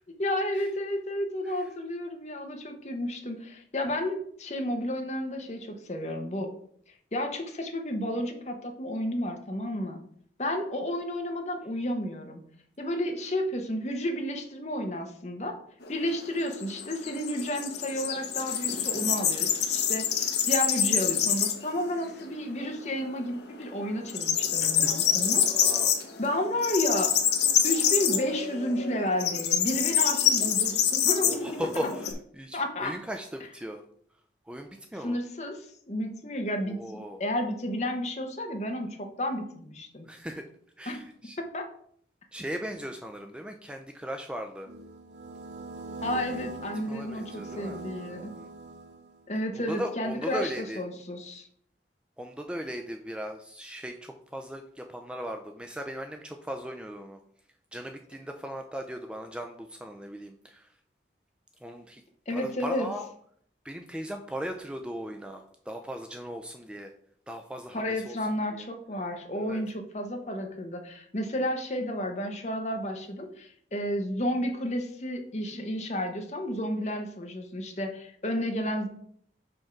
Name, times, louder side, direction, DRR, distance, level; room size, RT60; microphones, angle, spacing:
voice 1, 0.2-6.5 7.1-10.0 10.4-12.4 12.8-15.6 15.9-25.7 26.2-27.1 27.6-31.6 32.5-32.9 35.0-40.1 40.9-41.0 41.5-41.6 46.0-48.3 49.3-51.5 62.3-62.9 67.7-78.9, left 1 dB, 40° left, 4 dB, 0.9 m, -32 dB
sound 1, 15.8-21.7 22.1-22.2 22.6-23.4 23.6-32.1, left 8 dB, 70° left, 0.9 m, -26 dB
voice 2, 24.6-25.2 25.5-26.0 31.2-33.8 34.5-35.2 36.6-37.2 40.1-40.4 40.8-41.4 42.3-44.7 46.9-47.8 48.1-48.5 49.7-50.8 52.2-57.2 57.7-60.7 61.6-62.0 62.3-63.1 63.6-66.9 67.3-68.2 68.5-68.6 69.4-69.6, equal, 5° right, 4 dB, 0.3 m, -38 dB
sound 2, 44.7-49.3, right 3 dB, 75° right, 0.8 m, -41 dB
5.2 x 3.6 x 5.7 m, 0.63 s
head